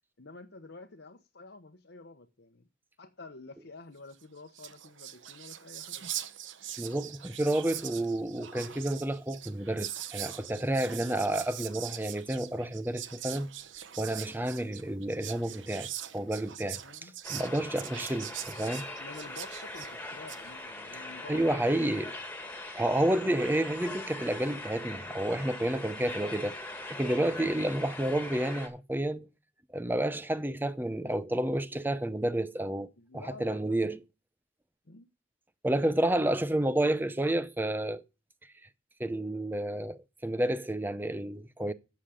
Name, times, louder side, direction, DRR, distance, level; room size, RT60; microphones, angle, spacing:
voice 1, 0.2-2.7 3.0-6.0 16.8-17.1 18.8-21.6 33.0-34.0 34.8-35.1, left 3 dB, 65° left, 1.0 m, -49 dB
Whispering, 4.2-4.3 4.5-20.4, right 11 dB, 80° right, 0.9 m, -42 dB
voice 2, 6.8-13.5 14.0-18.9 21.3-22.2 22.8-26.6 26.9-29.3 29.7-34.0 35.6-38.0 39.0-41.7, right 1 dB, 10° right, 0.6 m, -30 dB
sound 1, 17.2-28.7, left 2 dB, 10° left, 1.9 m, -41 dB
11.5 x 7.5 x 5.0 m
head